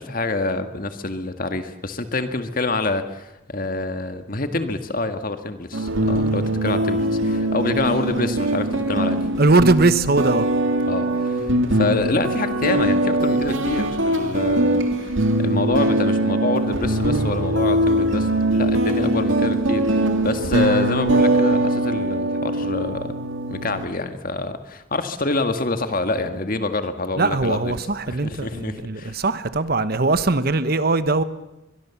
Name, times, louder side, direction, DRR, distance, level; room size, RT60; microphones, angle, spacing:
voice 1, 0.0-9.3 10.9-23.1 23.5-27.7 28.1-29.2, left 2 dB, 45° left, 1.7 m, -26 dB
sound 1, 5.7-23.9, right 1 dB, 70° right, 2.3 m, -21 dB
voice 2, 9.4-10.5 27.2-31.2, right 3 dB, 50° right, 1.1 m, -20 dB
23.0 x 22.5 x 7.2 m
head